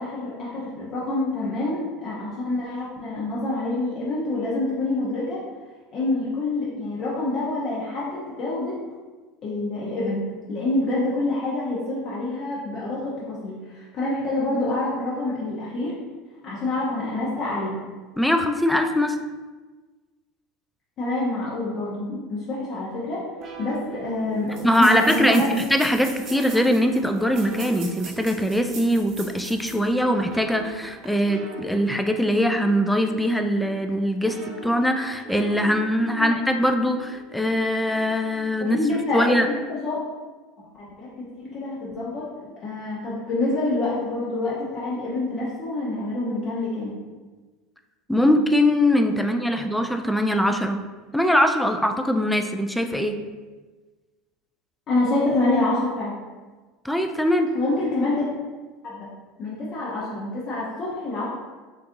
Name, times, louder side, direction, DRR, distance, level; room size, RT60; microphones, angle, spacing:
voice 1, 0.0-5.4 5.9-8.8 9.4-15.9 16.4-17.8 21.0-23.2 23.6-25.5 36.2-36.3 38.7-40.1 40.8-47.0 54.9-56.1 57.5-58.2 58.8-59.1 59.4-61.3, left 2 dB, 45° left, -7 dB, 0.7 m, -27 dB
voice 2, 18.2-19.2 24.6-34.4 34.6-38.8 39.1-39.5 48.1-50.8 51.1-53.2 56.8-57.5, equal, 5° left, 6 dB, 0.3 m, -22 dB
sound 1, 23.4-39.6, right 3 dB, 40° right, 0.7 m, -43 dB
sound 2, 23.4-23.5 23.7-23.8 24.5-29.9 30.3-30.4 30.9-31.1, right 4 dB, 60° right, 1.1 m, -41 dB
3.9 x 2.5 x 2.6 m, 1.3 s
hypercardioid pair, 80°, 0 cm